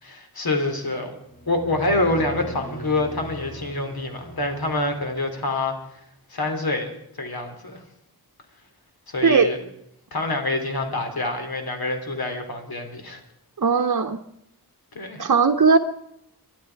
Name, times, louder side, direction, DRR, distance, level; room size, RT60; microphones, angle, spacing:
voice 1, 0.0-5.8 6.3-6.9 7.2-7.8 9.1-9.6 10.1-13.2 14.9-15.2, left 2 dB, 65° left, 5 dB, 3.2 m, -26 dB
sound 1, 1.3-5.6, right 3 dB, 20° left, 2.8 m, -40 dB
voice 2, 13.6-14.2 15.2-15.8, right 5 dB, 55° right, 3 dB, 0.9 m, -18 dB
23.0 x 12.0 x 4.7 m, 0.77 s
wide cardioid pair, 65°, 39 cm